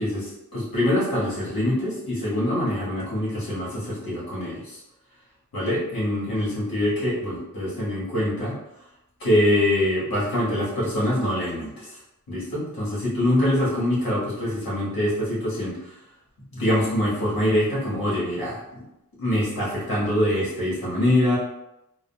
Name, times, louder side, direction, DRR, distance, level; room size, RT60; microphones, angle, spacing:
voice 1, 0.0-4.8 5.5-8.5 9.2-12.0 12.3-15.9 16.5-18.6 19.2-21.4, left 1 dB, 85° left, -7 dB, 1.4 m, -24 dB
3.6 x 2.2 x 2.2 m, 0.88 s
wide cardioid pair, 115°, 35 cm